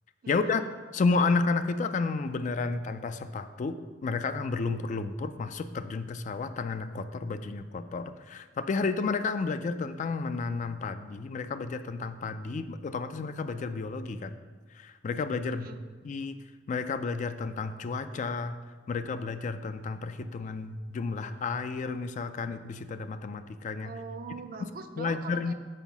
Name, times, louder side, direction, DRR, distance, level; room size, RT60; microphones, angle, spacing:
voice 1, 0.3-0.6 0.9-14.3 14.7-15.7 16.0-16.4 16.7-18.6 18.9-23.9 25.0-25.5, left 4 dB, 40° left, 11 dB, 0.3 m, -31 dB
voice 2, 23.8-25.5, right 4 dB, 50° right, 8 dB, 0.5 m, -42 dB
5.6 x 4.4 x 5.9 m, 1.5 s
head